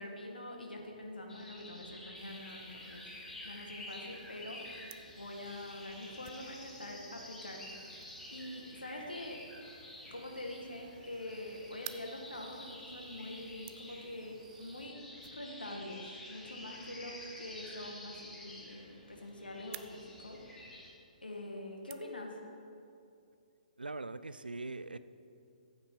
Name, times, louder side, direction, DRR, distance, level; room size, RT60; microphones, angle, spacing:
voice 1, 0.0-3.1 3.4-4.6 5.2-7.6 8.3-9.4 10.1-14.9 15.3-20.4 21.2-22.3, left 1 dB, 85° left, 1 dB, 2.0 m, -45 dB
sound 1, 1.3-20.9, left 1 dB, 10° left, 1.9 m, -50 dB
sound 2, 2.1-14.9, right 5 dB, 50° right, 1.2 m, -62 dB
sound 3, 3.5-22.6, right 15 dB, 20° right, 0.4 m, -58 dB
voice 2, 23.8-25.0, right 3 dB, 85° right, 14 dB, 0.5 m, -41 dB
15.0 x 8.7 x 4.1 m, 2.5 s
figure-of-eight pair, 130°, 5 cm